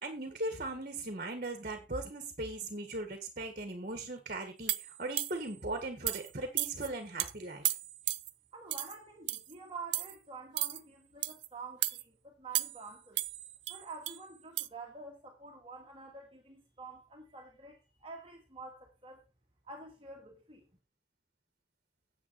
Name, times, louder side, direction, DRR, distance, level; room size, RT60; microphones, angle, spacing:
voice 1, 0.0-7.6, right 2 dB, 45° right, 1.7 m, -39 dB
sound 1, 4.7-5.5 6.1-6.3 6.6-6.9 7.2-7.3 7.7-8.3 8.7-9.0 9.3-9.5 9.9-10.2 10.6-10.8 11.2-11.5 11.8-12.0 12.6-12.9 13.2-14.2 14.6-14.7, right 15 dB, 80° right, 0.7 m, -34 dB
voice 2, 8.5-13.2 13.7-19.2 19.6-20.7, right 3 dB, 30° right, 1.9 m, -48 dB
9.9 x 8.2 x 4.3 m
head